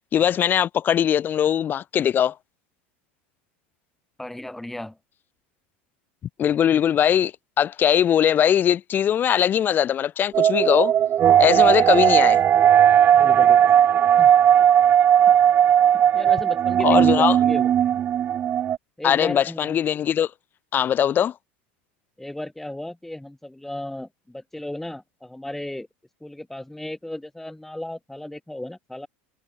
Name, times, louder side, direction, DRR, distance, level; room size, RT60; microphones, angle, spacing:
voice 1, 0.1-2.3 6.4-7.3 7.6-10.9 11.4-12.4 16.8-17.4 19.0-20.3 20.7-21.3, left 9 dB, 35° left, 1.4 m, -20 dB
voice 2, 4.2-5.0 13.1-13.7 14.2-14.3 15.3-15.4 15.9-18.0 19.0-19.8 22.2-25.9 26.2-29.1, left 1 dB, 5° left, 3.7 m, -35 dB
sound 1, 10.3-18.8, right 10 dB, 35° right, 0.7 m, -17 dB
supercardioid pair, 115°, 6 cm